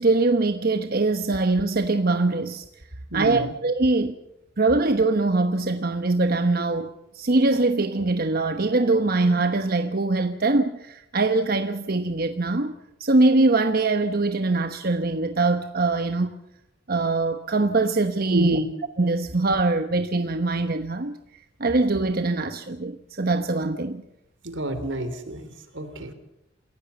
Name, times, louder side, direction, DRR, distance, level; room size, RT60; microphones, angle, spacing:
voice 1, 0.0-2.6 3.1-4.1 4.6-12.7 13.0-16.3 16.9-18.6 19.0-21.2 21.6-24.0, right 3 dB, 55° right, 1.1 m, -22 dB
voice 2, 3.1-3.5 18.3-18.7 24.4-26.1, right 1 dB, 80° right, 3.4 m, -29 dB
28.0 x 16.5 x 7.0 m
head